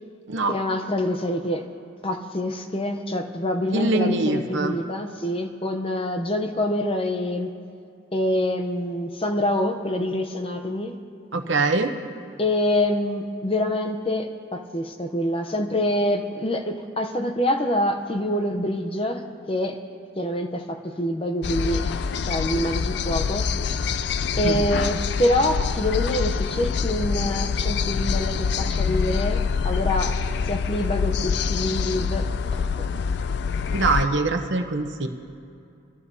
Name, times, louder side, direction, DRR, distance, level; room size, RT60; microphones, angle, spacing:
voice 1, 0.5-1.7 2.0-7.5 8.1-11.0 12.4-19.8 20.2-23.5 24.4-30.1 30.4-32.6, left 1 dB, 25° left, 5 dB, 0.7 m, -26 dB
voice 2, 3.7-4.7 11.3-11.9 24.4-24.6 33.7-35.1, right 3 dB, 60° right, 5 dB, 0.9 m, -23 dB
sound 1, 21.4-34.1, left 6 dB, 55° left, 0.3 m, -25 dB
23.5 x 14.0 x 2.7 m, 2.5 s
head